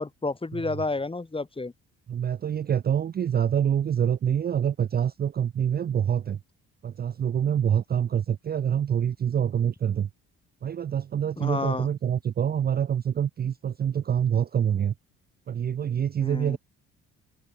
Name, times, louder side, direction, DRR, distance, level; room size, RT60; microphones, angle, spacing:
voice 1, 0.0-1.7 11.4-11.9 16.2-16.6, left 3 dB, 20° left, 2.3 m, -30 dB
voice 2, 2.1-6.4 6.8-10.1 10.6-14.9 15.5-16.6, right 9 dB, 35° right, 0.4 m, -26 dB
cardioid pair, 90°, 30 cm